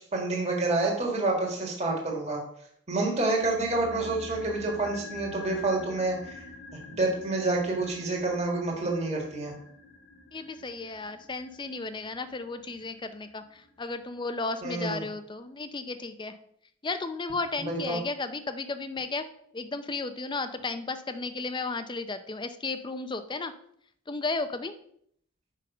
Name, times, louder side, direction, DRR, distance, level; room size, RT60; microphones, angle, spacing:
voice 1, 0.0-2.4 2.9-6.4 7.0-9.5 14.6-15.0 17.7-18.0, right 2 dB, 30° right, -1 dB, 1.8 m, -28 dB
sound 1, 3.4-13.7 13.9-14.0, left 2 dB, 80° left, 1.1 m, -46 dB
voice 2, 10.3-16.3 16.8-19.3 19.5-23.5 24.1-24.7, left 3 dB, 20° left, 10 dB, 0.5 m, -34 dB
6.6 x 5.3 x 5.3 m, 0.67 s
head